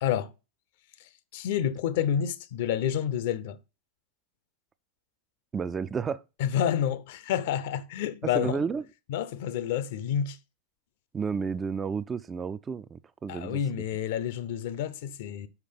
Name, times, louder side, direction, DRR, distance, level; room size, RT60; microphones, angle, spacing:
voice 1, 0.0-0.3 1.3-3.6 6.4-8.6 9.1-10.4 13.3-15.5, left 9 dB, 50° left, 0.6 m, -29 dB
voice 2, 5.5-6.2 8.3-8.8 11.1-13.6, right 6 dB, 20° right, 0.4 m, -31 dB
5.9 x 5.0 x 5.1 m
figure-of-eight pair, 90°, 0 cm